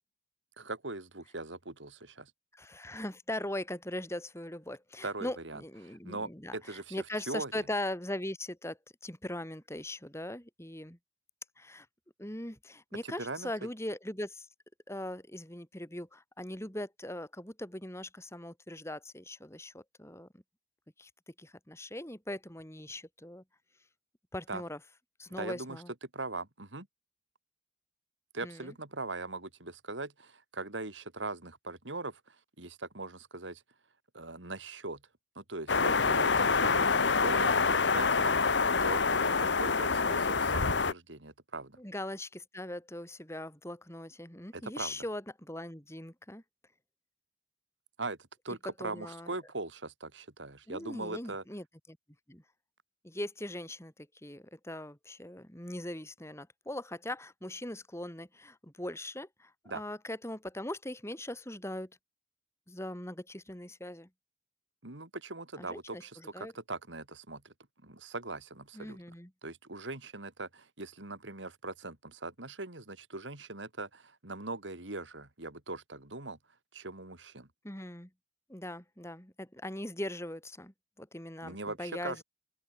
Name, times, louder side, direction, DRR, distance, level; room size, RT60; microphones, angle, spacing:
voice 1, 0.6-2.3 5.0-7.6 13.0-13.5 24.5-24.6 25.4-26.9 28.3-33.6 34.1-35.0 35.4-41.8 44.5-45.0 48.0-48.2 48.4-51.4 59.7-59.8 64.8-67.5 67.8-69.0 69.4-76.4 76.7-77.5 81.4-82.2, right 3 dB, 80° right, 3.8 m, -41 dB
voice 2, 2.5-11.0 11.6-11.9 12.2-14.5 14.9-20.4 21.0-23.4 24.3-24.8 25.2-25.9 28.4-28.7 36.7-37.0 37.3-37.6 41.8-46.4 48.8-49.3 50.7-52.0 52.3-52.4 53.0-61.9 62.7-64.1 65.6-66.5 68.7-69.3 77.6-78.1 78.5-82.2, left 1 dB, 15° left, 4.6 m, -40 dB
sound 1, 35.7-40.9, left 4 dB, 70° left, 1.3 m, -26 dB
open air
head